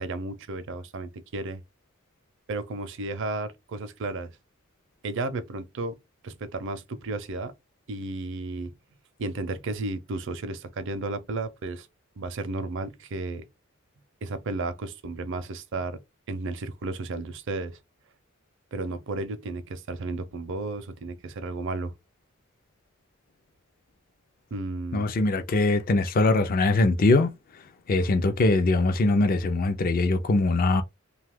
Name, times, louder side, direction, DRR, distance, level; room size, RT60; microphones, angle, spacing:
voice 1, 0.0-1.6 2.5-4.3 5.0-6.0 6.2-7.5 7.9-8.7 9.2-11.9 12.2-13.5 14.2-16.0 16.3-17.8 18.7-21.9 24.5-25.1, right 2 dB, 65° right, 0.5 m, -33 dB
voice 2, 24.9-30.8, left 2 dB, 45° left, 0.4 m, -22 dB
2.7 x 2.3 x 3.4 m
head